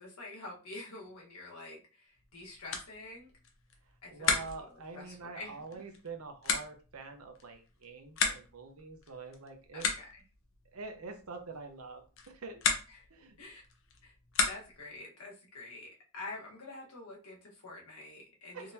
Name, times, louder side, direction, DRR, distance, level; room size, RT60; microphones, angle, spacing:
voice 1, 0.0-3.3 4.0-5.6 9.7-10.2 12.9-13.1 13.4-13.6 14.0-14.1 14.4-18.7, left 2 dB, 80° left, -2 dB, 1.4 m, -47 dB
sound 1, 2.1-15.0, left 5 dB, 65° left, 0.7 m, -37 dB
voice 2, 3.8-9.9 10.7-12.6 13.1-13.4 18.5-18.7, right 4 dB, 85° right, 5 dB, 0.8 m, -46 dB
3.8 x 2.9 x 2.7 m, 0.34 s
head